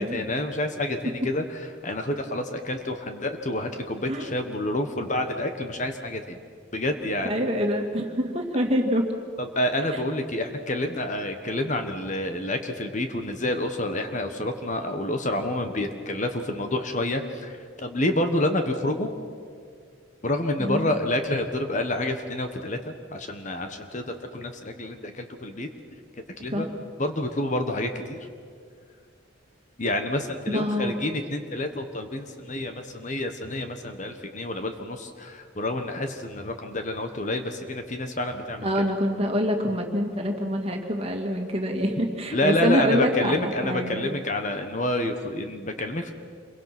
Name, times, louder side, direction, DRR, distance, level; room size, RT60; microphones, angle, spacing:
voice 1, 0.0-6.4 6.7-7.3 9.4-19.1 20.2-25.7 26.4-26.7 27.0-28.2 29.8-38.7 42.3-46.1, left 1 dB, 35° left, 6 dB, 1.4 m, -28 dB
voice 2, 7.2-9.1 9.9-10.0 20.6-20.9 26.5-26.7 30.5-31.0 38.6-44.1, equal, 30° right, 2 dB, 2.4 m, -26 dB
27.5 x 23.0 x 6.1 m, 2.1 s
head